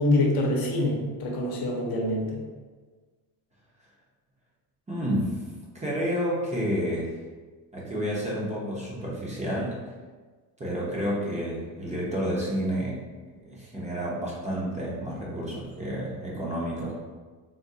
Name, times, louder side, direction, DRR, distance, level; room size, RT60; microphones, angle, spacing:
voice 1, 0.0-2.4, left 1 dB, 60° left, -1 dB, 0.8 m, -25 dB
voice 2, 4.9-5.4 5.7-7.1 7.7-9.8 10.6-13.0 13.5-16.9, equal, 15° right, -5 dB, 0.6 m, -30 dB
3.6 x 2.2 x 2.6 m, 1.4 s
cardioid pair, 125°, 41 cm